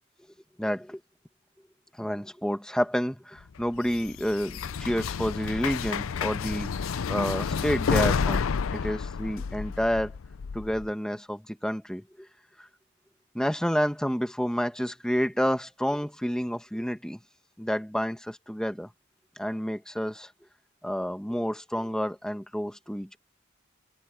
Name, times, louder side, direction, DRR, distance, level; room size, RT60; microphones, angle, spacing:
voice 1, 0.6-1.0 2.0-8.5 8.7-10.2 10.5-12.3 12.6-12.7 13.3-17.2 17.6-18.9 19.4-20.3 20.8-23.2, equal, 5° left, 1.6 m, -29 dB
sound 1, 3.6-10.9, left 6 dB, 90° left, 0.5 m, -30 dB
head